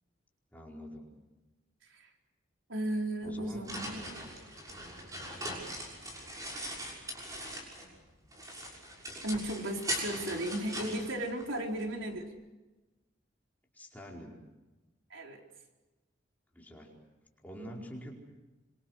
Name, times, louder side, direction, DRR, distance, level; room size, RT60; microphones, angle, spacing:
voice 1, 0.5-1.1 3.2-3.8 13.7-14.4 16.5-16.9 17.4-18.2, equal, 10° left, -2 dB, 4.8 m, -46 dB
voice 2, 2.7-4.3 9.2-12.3 15.1-15.4, right 1 dB, 75° right, 1 dB, 4.2 m, -35 dB
sound 1, 3.2-8.0 8.3-11.8, equal, 15° right, 6.1 m, -40 dB
26.5 x 25.5 x 6.5 m, 1.1 s
head